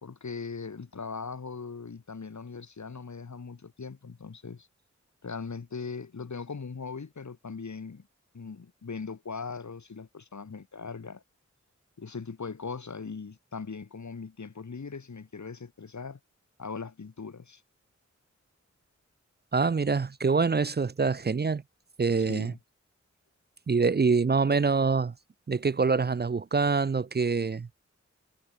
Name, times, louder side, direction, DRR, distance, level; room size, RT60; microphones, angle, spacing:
voice 1, 0.0-4.7 5.2-8.1 8.3-11.2 12.0-16.2 16.6-17.6 22.2-22.6, left 5 dB, 75° left, 2.1 m, -39 dB
voice 2, 19.5-21.6 22.0-22.5 23.7-25.1 25.5-27.7, right 4 dB, 35° right, 0.5 m, -25 dB
cardioid pair, 40°, 29 cm